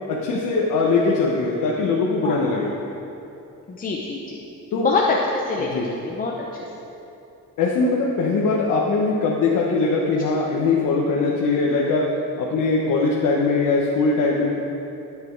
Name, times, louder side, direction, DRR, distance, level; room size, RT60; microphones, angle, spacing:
voice 1, 0.1-2.7 4.7-4.9 5.6-5.8 7.6-12.0 12.4-14.5, left 3 dB, 75° left, -3 dB, 1.3 m, -21 dB
voice 2, 2.2-2.6 3.7-4.4 4.7-6.7, left 3 dB, 25° left, -2 dB, 0.8 m, -25 dB
13.0 x 9.0 x 4.7 m, 2.8 s
cardioid pair, 170°, 32 cm